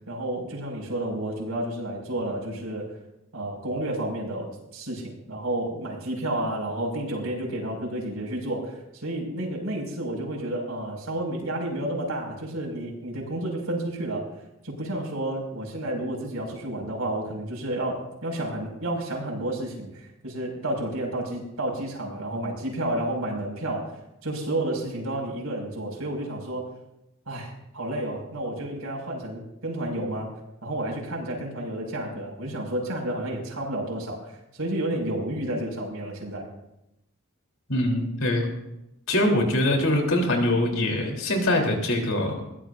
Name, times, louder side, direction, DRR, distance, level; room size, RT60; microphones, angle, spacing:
voice 1, 0.1-3.0 3.3-14.2 14.6-26.7 27.3-30.4 30.6-36.5, right 1 dB, 85° right, 0 dB, 5.9 m, -31 dB
voice 2, 37.7-38.4 39.1-42.5, left 1 dB, 70° left, 1 dB, 3.6 m, -23 dB
21.5 x 17.0 x 2.6 m, 0.88 s
head